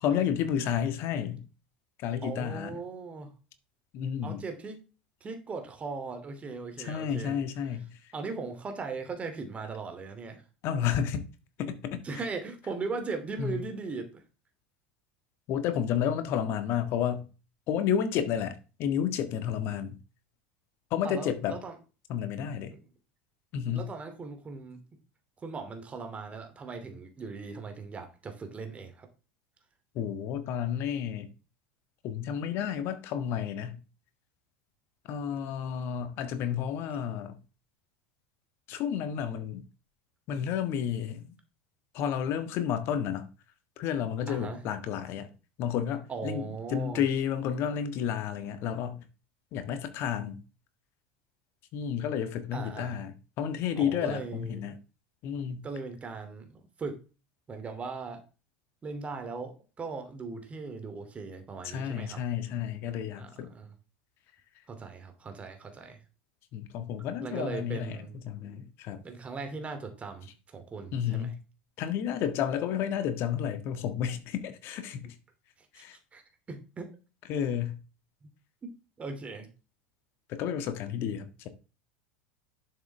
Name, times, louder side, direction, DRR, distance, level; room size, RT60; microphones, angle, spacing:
voice 1, 0.0-1.5 2.0-2.8 3.9-4.4 6.8-7.9 10.6-11.2 11.6-12.0 13.4-13.6 15.5-17.3 17.7-18.5 18.8-20.0 20.9-21.6 22.1-22.7 23.5-23.9 29.9-31.3 32.0-33.8 35.1-37.4 38.7-39.6 40.3-41.3 41.9-43.3 43.8-45.3 45.6-49.0 49.5-50.4 51.7-54.8 55.2-55.6 61.6-63.5 66.5-68.0 68.2-69.0 70.9-71.4 71.8-75.1 75.7-76.0 77.3-77.8 80.3-81.5, left 8 dB, 45° left, 1.6 m, -31 dB
voice 2, 2.2-3.3 4.2-4.8 5.2-7.4 8.1-10.4 12.0-14.2 21.0-21.8 22.7-22.8 23.7-24.8 25.4-29.1 44.3-44.6 46.1-47.0 52.5-53.0 53.8-54.6 55.6-57.0 57.5-58.2 58.8-62.2 63.2-63.8 64.7-66.0 67.2-68.1 69.0-71.3 75.7-75.8 76.1-76.2 76.5-76.9 78.2-78.3 78.6-78.7 79.0-79.5, right 4 dB, 25° right, 2.7 m, -39 dB
11.0 x 7.0 x 3.5 m
figure-of-eight pair, 75°, 5 cm